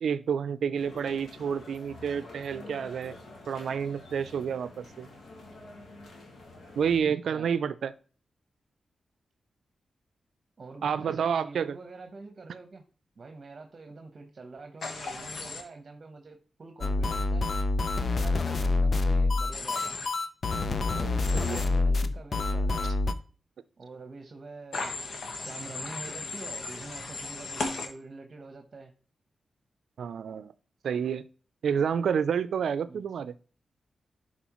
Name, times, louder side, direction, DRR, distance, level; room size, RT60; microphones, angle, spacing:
voice 1, 0.0-3.2 3.5-5.1 6.8-7.9 10.8-11.8 21.0-21.6 30.0-30.5 30.8-31.2 31.6-33.3, right 7 dB, 90° right, 14 dB, 0.4 m, -29 dB
sound 1, 0.8-7.0, left 2 dB, 90° left, 1.9 m, -48 dB
voice 2, 10.6-12.8 13.2-17.5 18.0-20.0 20.8-23.0 23.8-25.0 25.3-28.9 32.9-33.1, right 3 dB, 45° right, 5 dB, 1.0 m, -46 dB
Human voice / Train, 14.8-15.6 19.5-20.1 21.2-21.6 24.7-27.9, left 3 dB, 75° left, 1.3 m, -36 dB
sound 2, 16.8-23.1, left 3 dB, 55° left, 0.6 m, -27 dB
11.0 x 4.2 x 3.0 m, 0.39 s
wide cardioid pair, 90°, 0 cm